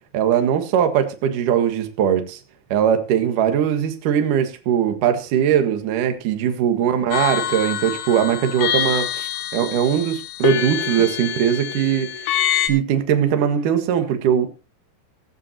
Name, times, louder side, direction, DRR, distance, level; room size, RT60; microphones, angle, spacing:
voice 1, 0.1-2.4 2.7-12.1 12.6-14.5, right 9 dB, 60° right, 2.4 m, -20 dB
sound 1, 7.1-12.7, left 10 dB, 75° left, 3.7 m, -25 dB
15.0 x 14.5 x 2.8 m
omnidirectional pair, 5.6 m